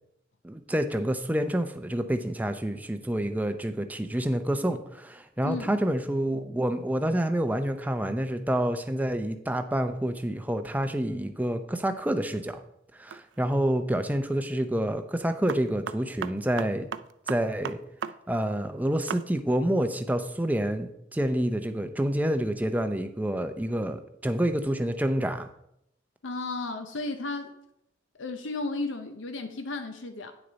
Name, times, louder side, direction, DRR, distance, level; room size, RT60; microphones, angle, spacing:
voice 1, 0.4-12.6 12.9-16.9 17.3-17.8 18.3-25.5, right 1 dB, 10° right, 8 dB, 0.5 m, -28 dB
sound 1, 13.1-13.4 15.5-18.1 18.4-18.5 19.1-19.2, right 7 dB, 60° right, 0.4 m, -35 dB
voice 2, 26.2-27.5 28.2-30.3, left 3 dB, 75° left, 7 dB, 0.7 m, -33 dB
9.3 x 6.4 x 4.0 m, 0.78 s
head